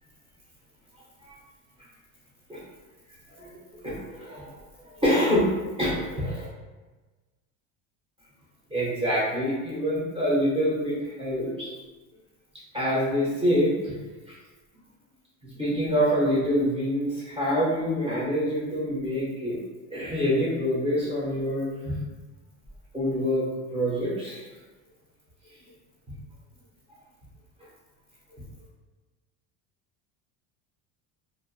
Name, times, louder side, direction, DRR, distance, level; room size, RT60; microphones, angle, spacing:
voice 1, 3.8-4.6 4.8-5.5 5.8-6.5 8.7-11.7 12.7-13.9 15.6-19.6 19.9-22.0 22.9-24.4, equal, 15° right, -8 dB, 0.8 m, -26 dB
2.5 x 2.1 x 2.6 m, 1.2 s
cardioid pair, 135°, 38 cm